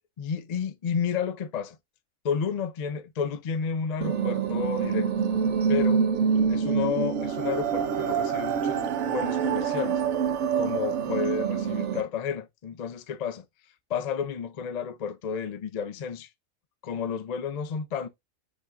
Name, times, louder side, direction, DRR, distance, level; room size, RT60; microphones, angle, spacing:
voice 1, 0.2-1.8 2.2-5.1 5.7-6.0 6.5-10.0 10.6-13.4 13.9-16.3 16.8-18.1, left 7 dB, 60° left, 0.4 m, -31 dB
sound 1, 4.0-12.0, right 7 dB, 65° right, 0.9 m, -26 dB
5.2 x 2.6 x 3.6 m
omnidirectional pair, 1.3 m